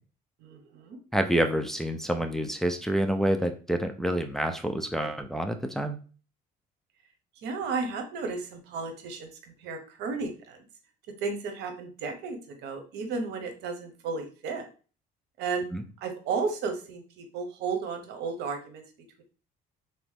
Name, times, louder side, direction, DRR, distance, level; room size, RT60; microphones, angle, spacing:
voice 1, 0.4-1.0 7.4-10.6 11.2-14.7 15.4-15.7 16.0-18.8, right 4 dB, 85° right, 6 dB, 1.0 m, -33 dB
voice 2, 1.1-6.0 15.7-15.8, right 1 dB, ahead, 5 dB, 0.5 m, -28 dB
3.9 x 3.0 x 3.6 m, 0.37 s
cardioid pair, 110°, 17 cm